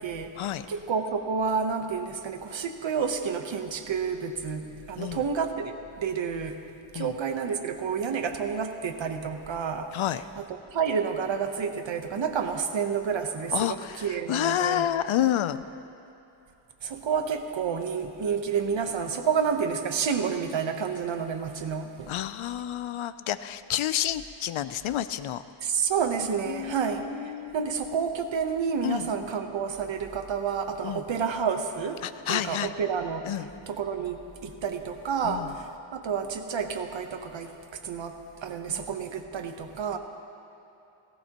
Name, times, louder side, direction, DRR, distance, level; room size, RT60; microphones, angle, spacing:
voice 1, 0.0-0.3 0.7-6.6 6.9-9.9 10.4-10.5 10.7-14.9 16.8-22.1 25.6-33.3 33.7-37.5 37.8-38.2 38.4-40.0, right 6 dB, 65° right, 6 dB, 1.0 m, -30 dB
voice 2, 9.9-10.2 13.5-15.6 22.1-25.4 26.2-27.6 28.8-29.1 30.8-31.0 32.0-32.7 33.2-33.5 35.2-35.5 38.7-38.8, left 11 dB, 70° left, 14 dB, 0.5 m, -29 dB
17.0 x 16.5 x 2.9 m, 2.9 s
wide cardioid pair, 140°, 50 cm